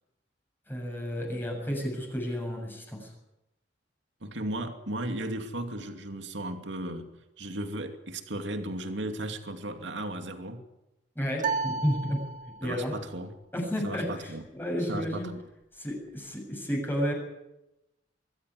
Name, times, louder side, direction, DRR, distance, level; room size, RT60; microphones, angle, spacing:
voice 1, 0.7-3.1 11.2-12.2 12.6-13.0 13.5-15.3 15.7-17.1, equal, 10° left, 0 dB, 7.4 m, -31 dB
voice 2, 4.2-7.0 7.4-10.6 12.6-13.3 13.8-14.4 14.9-15.4, right 1 dB, 70° right, 6 dB, 2.6 m, -35 dB
sound 1, 11.4-12.9, right 5 dB, 45° right, 1.9 m, -33 dB
24.0 x 15.0 x 9.8 m, 0.94 s
head